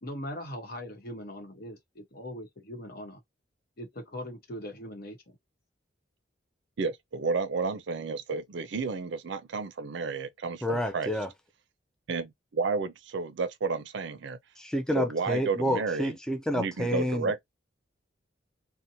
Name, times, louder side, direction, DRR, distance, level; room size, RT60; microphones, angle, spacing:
voice 1, 0.0-3.2 3.8-5.4, equal, 55° left, 0.9 m, -40 dB
voice 2, 6.8-11.1 12.1-14.4 14.9-16.2 16.5-17.4, right 4 dB, 70° right, 0.5 m, -31 dB
voice 3, 10.6-11.3 14.6-17.3, equal, 5° left, 0.4 m, -29 dB
2.8 x 2.1 x 2.6 m
head